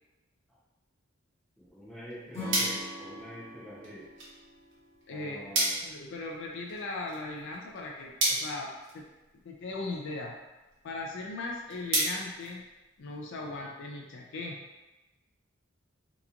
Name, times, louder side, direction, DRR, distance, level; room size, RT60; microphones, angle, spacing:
voice 1, 1.6-4.1 5.1-5.8 13.4-13.5, equal, 5° left, -9 dB, 0.8 m, -46 dB
sound 1, 1.8-13.2, right 2 dB, 65° right, 0.9 m, -36 dB
Acoustic guitar / Strum, 2.3-5.6, left 1 dB, 35° left, 1.1 m, -43 dB
voice 2, 5.1-9.1 9.4-10.4 10.8-12.6 13.0-14.6, left 2 dB, 65° left, -1 dB, 0.4 m, -38 dB
2.9 x 2.3 x 2.4 m, 1.1 s
head